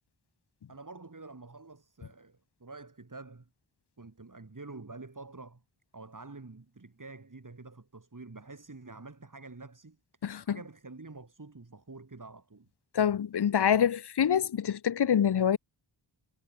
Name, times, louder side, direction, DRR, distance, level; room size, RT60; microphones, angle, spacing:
voice 1, 0.7-3.5 4.0-5.6 5.9-10.0 10.4-12.7, right 3 dB, 45° right, 5.7 m, -47 dB
voice 2, 10.2-10.6 12.9-15.6, left 8 dB, 60° left, 0.7 m, -26 dB
wide cardioid pair, 70°, 46 cm